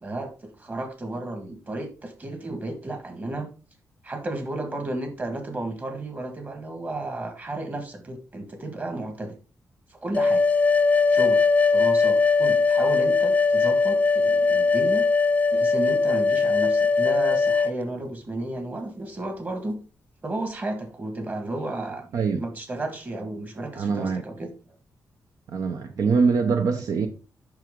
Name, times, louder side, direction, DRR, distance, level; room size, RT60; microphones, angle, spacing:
voice 1, 0.0-3.5 4.0-9.4 9.9-10.5 11.1-11.4 11.7-15.0 15.5-19.8 20.2-24.5, right 2 dB, 30° right, 1.7 m, -33 dB
sound 1, 10.1-17.7, left 4 dB, 25° left, 0.4 m, -20 dB
voice 2, 22.1-22.4 23.7-24.2 25.5-27.1, right 5 dB, 70° right, 0.9 m, -23 dB
9.0 x 6.1 x 3.7 m
wide cardioid pair, 145°, 6 cm